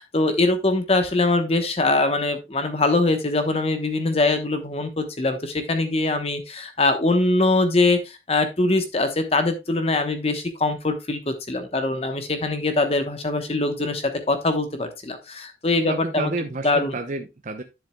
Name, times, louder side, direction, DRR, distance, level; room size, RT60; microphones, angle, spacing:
voice 1, 0.0-16.3 16.6-16.9, left 2 dB, 35° left, 8 dB, 1.0 m, -22 dB
voice 2, 15.8-17.6, right 3 dB, 45° right, 5 dB, 0.7 m, -30 dB
10.5 x 7.4 x 2.2 m, 0.24 s
head